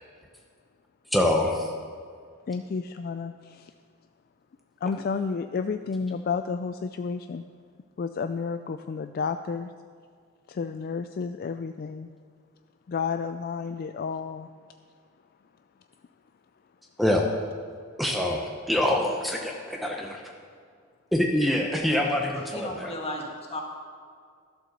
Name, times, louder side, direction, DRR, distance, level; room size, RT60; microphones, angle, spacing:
voice 1, 1.1-1.7 17.0-17.3 18.0-20.2 21.1-23.0, left 1 dB, ahead, 1 dB, 0.8 m, -25 dB
voice 2, 2.5-3.7 4.8-7.4 8.0-9.7 10.5-12.1 12.9-14.5, left 5 dB, 45° left, 9 dB, 0.3 m, -31 dB
voice 3, 22.5-23.6, left 1 dB, 25° left, 0 dB, 1.7 m, -35 dB
12.0 x 7.8 x 6.7 m, 2.1 s
head